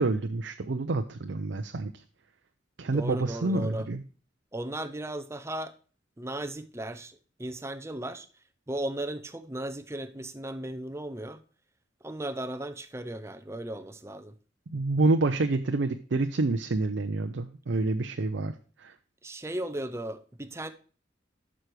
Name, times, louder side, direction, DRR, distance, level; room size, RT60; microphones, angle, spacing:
voice 1, 0.0-1.9 2.8-4.0 14.7-18.5 18.8-18.9, right 3 dB, 70° right, 0.5 m, -28 dB
voice 2, 2.8-3.9 4.5-5.7 6.2-8.3 8.7-11.4 12.0-14.3 19.2-20.7, right 1 dB, 15° right, 0.6 m, -36 dB
11.5 x 6.2 x 3.1 m
head